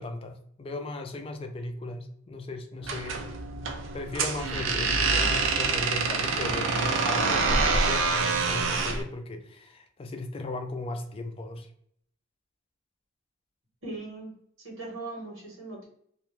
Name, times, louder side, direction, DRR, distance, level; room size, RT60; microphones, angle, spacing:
voice 1, 0.0-3.3 3.9-11.7, left 2 dB, 30° left, 5 dB, 0.3 m, -37 dB
sound 1, 2.8-9.0, right 4 dB, 70° right, 0.4 m, -26 dB
voice 2, 13.8-14.3 14.6-15.9, right 2 dB, 85° right, -3 dB, 1.2 m, -39 dB
2.4 x 2.2 x 3.0 m, 0.67 s
head